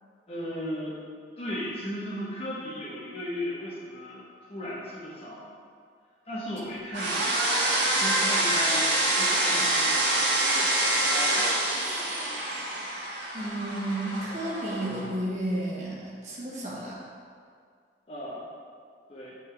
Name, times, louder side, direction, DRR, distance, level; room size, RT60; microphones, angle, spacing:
voice 1, 0.3-1.0 1.4-5.5 6.3-8.9 9.1-11.5 18.1-18.4 19.1-19.3, left 1 dB, 35° left, -7 dB, 0.9 m, -36 dB
sound 1, 6.9-15.1, right 1 dB, 80° right, 1.3 m, -26 dB
voice 2, 13.3-16.9, right 1 dB, 40° right, -7 dB, 1.3 m, -32 dB
8.6 x 3.8 x 3.3 m, 2.1 s
head